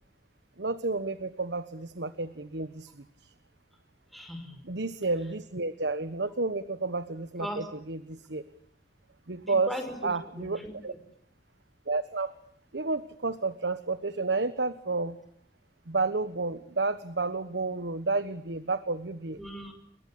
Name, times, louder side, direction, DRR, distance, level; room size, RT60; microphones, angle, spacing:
voice 1, 0.6-3.3 4.7-8.4 9.3-9.7 10.0-10.9 11.9-12.3 12.7-15.2 15.9-19.4, right 3 dB, 85° right, 13 dB, 1.2 m, -31 dB
voice 2, 4.1-4.7 7.4-7.7 9.4-10.1 10.4-11.0 19.4-19.7, equal, ahead, 5 dB, 5.1 m, -38 dB
29.5 x 22.5 x 8.7 m, 0.65 s
head